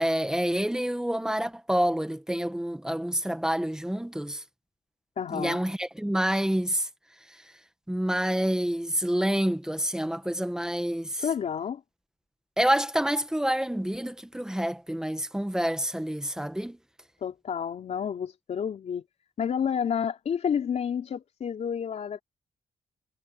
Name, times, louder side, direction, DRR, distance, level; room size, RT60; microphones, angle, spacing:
voice 1, 0.0-4.4 5.3-6.9 7.9-11.2 12.6-16.8, equal, 5° right, 1.4 m, -28 dB
voice 2, 5.2-5.6 11.2-11.8 17.2-19.0 19.4-22.2, left 7 dB, 55° left, 4.7 m, -30 dB
wide cardioid pair, 145°, 14 cm